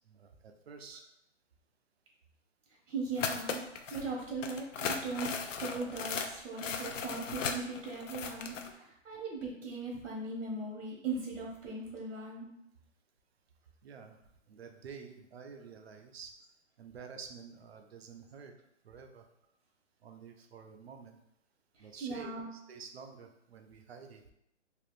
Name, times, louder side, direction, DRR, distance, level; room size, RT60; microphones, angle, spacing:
voice 1, 0.1-1.0 4.0-4.1 9.1-9.2 13.8-14.2 14.5-16.3 16.8-18.5 18.8-19.2 20.0-21.2 21.8-24.2, right 6 dB, 55° right, 5 dB, 0.5 m, -50 dB
voice 2, 2.9-3.6 3.9-5.3 5.6-12.5 21.7-22.5, right 3 dB, 75° right, -2 dB, 0.9 m, -39 dB
sound 1, 3.2-4.0 4.4-8.7, left 6 dB, 85° left, 0.5 m, -37 dB
3.4 x 2.4 x 2.5 m, 0.78 s
hypercardioid pair, 170°, 37 cm